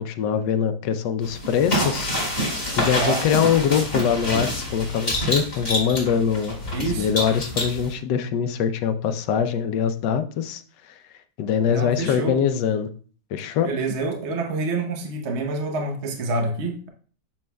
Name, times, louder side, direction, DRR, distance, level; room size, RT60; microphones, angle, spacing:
voice 1, 0.0-2.1 2.8-10.9 11.4-12.9 13.3-13.8, left 7 dB, 85° left, 9 dB, 1.3 m, -23 dB
sound 1, 1.2-7.9, equal, 25° left, 2.7 m, -27 dB
voice 2, 6.7-7.1 11.7-12.4 13.6-16.9, right 3 dB, 50° right, 3 dB, 1.0 m, -27 dB
7.3 x 6.3 x 2.2 m, 0.42 s
omnidirectional pair, 1.8 m